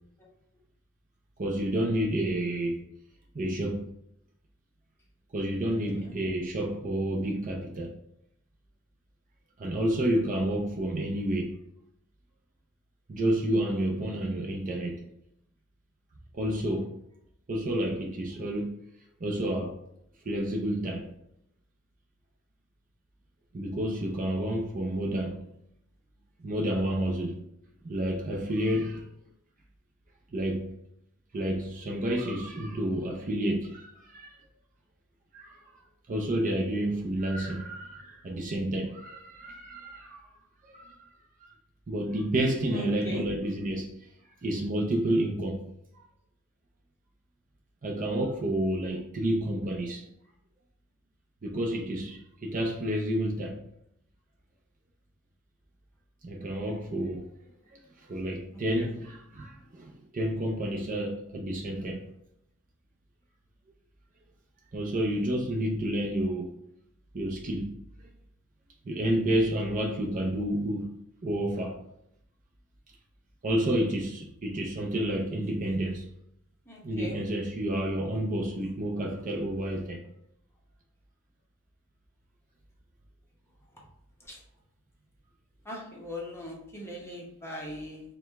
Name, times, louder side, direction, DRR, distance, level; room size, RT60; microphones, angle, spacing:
voice 1, 1.4-2.8 3.3-3.8 5.3-7.9 9.6-11.6 13.1-15.0 16.3-16.9 17.5-18.7 19.2-19.8 20.3-21.1 23.5-25.4 26.4-27.4 27.8-29.0 30.3-30.7 31.3-34.4 35.3-35.6 36.1-40.2 40.7-41.0 41.9-43.9 44.4-45.6 47.8-50.0 51.4-53.6 56.2-57.3 57.7-62.0 64.7-66.6 67.1-67.7 68.8-70.9 71.2-71.8 73.4-76.0 76.8-80.0, right 1 dB, 35° right, 0.5 m, -30 dB
voice 2, 42.7-43.2 58.8-58.9 76.7-77.2 85.7-88.0, equal, 10° left, 0.9 m, -39 dB
4.8 x 2.3 x 3.5 m
head